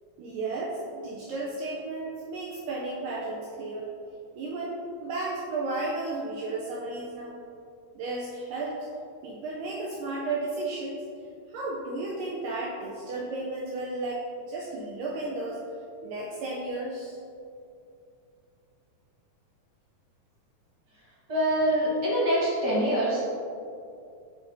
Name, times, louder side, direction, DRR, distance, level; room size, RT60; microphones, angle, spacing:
voice 1, 0.2-3.9 4.4-7.4 8.0-8.8 9.2-11.0 11.5-15.6 16.0-17.2, right 2 dB, 75° right, -4 dB, 2.2 m, -33 dB
voice 2, 21.3-23.2, right 1 dB, 45° right, -8 dB, 1.5 m, -24 dB
7.9 x 7.0 x 2.8 m, 2.5 s
omnidirectional pair, 4.2 m